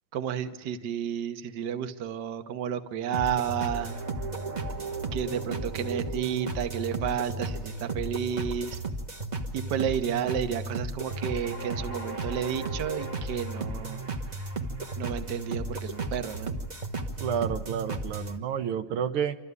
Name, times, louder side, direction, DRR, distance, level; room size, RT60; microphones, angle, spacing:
voice 1, 0.1-4.0 5.1-8.8 9.5-14.0 15.0-16.5, right 9 dB, 60° right, 8 dB, 1.5 m, -31 dB
sound 1, 3.1-18.4, right 2 dB, 25° right, 1.0 m, -34 dB
voice 2, 17.2-19.4, right 8 dB, 80° right, 8 dB, 1.8 m, -30 dB
27.0 x 14.0 x 9.5 m, 1.2 s
omnidirectional pair, 2.4 m